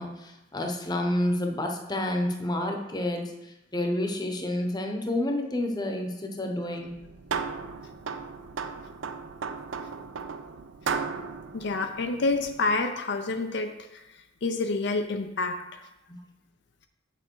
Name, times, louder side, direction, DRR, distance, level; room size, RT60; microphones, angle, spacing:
voice 1, 0.0-6.9 16.1-16.2, left 1 dB, 20° left, 2 dB, 0.9 m, -29 dB
sound 1, 6.8-12.7, right 5 dB, 85° right, 0.6 m, -36 dB
voice 2, 11.5-15.9, left 3 dB, 60° left, 6 dB, 0.5 m, -29 dB
7.1 x 6.8 x 4.6 m, 0.95 s
head